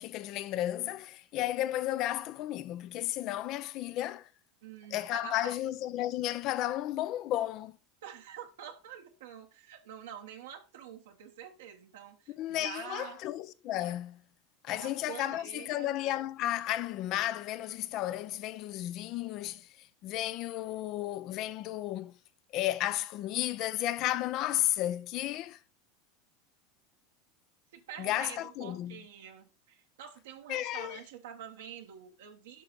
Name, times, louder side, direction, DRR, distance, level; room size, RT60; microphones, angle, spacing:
voice 1, 0.0-4.3 4.9-7.8 12.3-14.2 14.6-22.2 22.5-25.6 28.0-29.0 30.5-31.0, left 14 dB, 50° left, 0.7 m, -33 dB
voice 2, 4.6-5.6 8.0-13.2 14.7-15.9 27.7-32.6, right 9 dB, 80° right, 1.2 m, -47 dB
8.2 x 5.8 x 4.1 m
hypercardioid pair, 95°, 0 cm